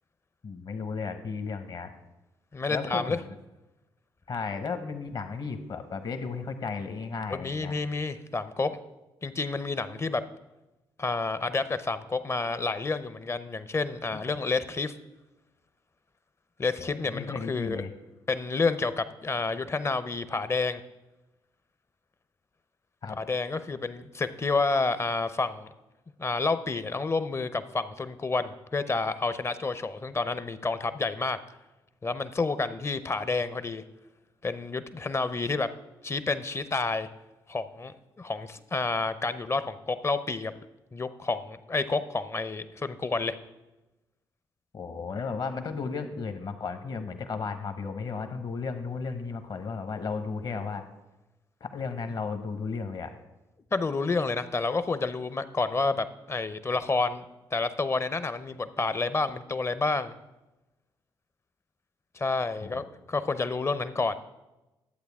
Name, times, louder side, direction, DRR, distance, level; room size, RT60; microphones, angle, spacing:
voice 1, 0.4-1.9 2.7-3.3 4.3-7.7 14.1-14.2 16.8-17.9 23.0-23.2 44.7-50.8 51.6-53.1 62.6-62.8, left 5 dB, 50° left, 8 dB, 1.1 m, -34 dB
voice 2, 2.5-3.2 7.3-8.8 9.2-10.2 11.0-14.9 16.6-17.8 18.3-20.8 23.2-25.7 26.2-31.4 32.0-33.8 34.4-35.7 36.0-37.1 37.5-40.5 40.9-43.4 53.7-57.2 57.5-60.1 62.1-64.2, left 3 dB, 30° left, 13 dB, 0.7 m, -29 dB
11.5 x 8.1 x 3.6 m, 1.0 s
hypercardioid pair, 50°, 9 cm